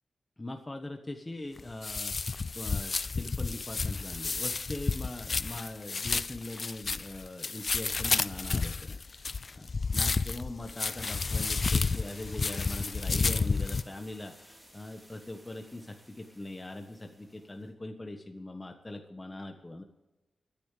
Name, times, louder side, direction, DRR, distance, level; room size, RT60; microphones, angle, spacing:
voice 1, 0.4-19.8, left 2 dB, 25° left, 4 dB, 1.4 m, -42 dB
sound 1, 1.6-13.8, left 4 dB, 50° left, 0.4 m, -31 dB
sound 2, 10.8-17.7, equal, 10° right, 4.0 m, -54 dB
25.0 x 10.5 x 3.4 m, 1.1 s
cardioid pair, 70°, 0 cm